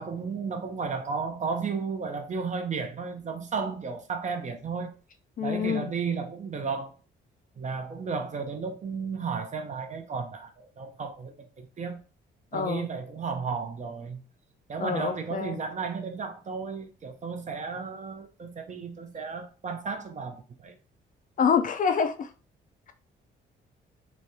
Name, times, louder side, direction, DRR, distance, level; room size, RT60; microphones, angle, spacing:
voice 1, 0.0-4.9 5.4-6.9 7.6-12.0 12.5-14.2 14.7-20.7, right 5 dB, 35° right, 0.6 m, -33 dB
voice 2, 5.4-5.9 12.5-12.9 14.8-15.6 21.4-22.3, left 6 dB, 40° left, 0.4 m, -26 dB
3.1 x 2.3 x 2.7 m
cardioid pair, 90°, 20 cm